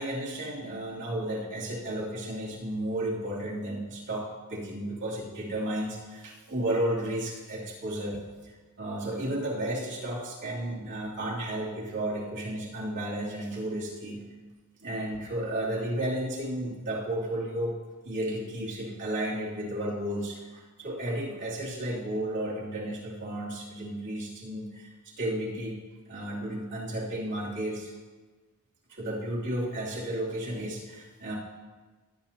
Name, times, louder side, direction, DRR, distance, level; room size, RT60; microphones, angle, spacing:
voice 1, 0.0-8.5 8.8-14.3 14.8-17.8 18.0-25.8 26.1-27.9 28.9-31.3, right 1 dB, 55° right, -6 dB, 2.9 m, -33 dB
18.5 x 9.1 x 3.0 m, 1.3 s
head